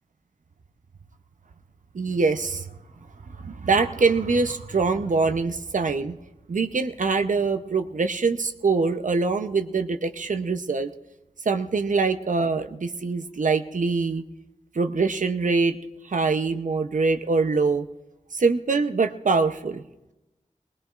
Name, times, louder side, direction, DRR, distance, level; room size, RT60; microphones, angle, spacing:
voice 1, 1.9-2.6 3.4-6.2 6.5-10.9 11.4-14.2 14.7-15.8 16.0-17.9 18.3-19.8, right 4 dB, 75° right, 6 dB, 0.8 m, -24 dB
20.0 x 19.5 x 2.5 m, 0.99 s
wide cardioid pair, 75°, 13 cm